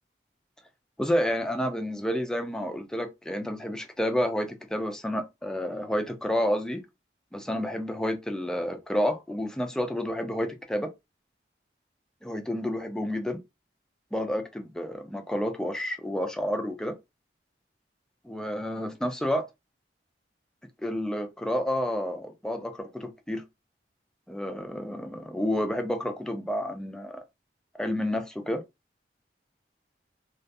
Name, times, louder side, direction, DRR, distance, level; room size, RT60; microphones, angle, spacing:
voice 1, 1.0-6.8 7.3-10.9 12.2-13.4 14.1-17.0 18.2-19.5 20.8-23.4 24.3-27.2 27.8-28.6, equal, 5° left, 0.3 m, -30 dB
2.3 x 2.3 x 2.5 m
head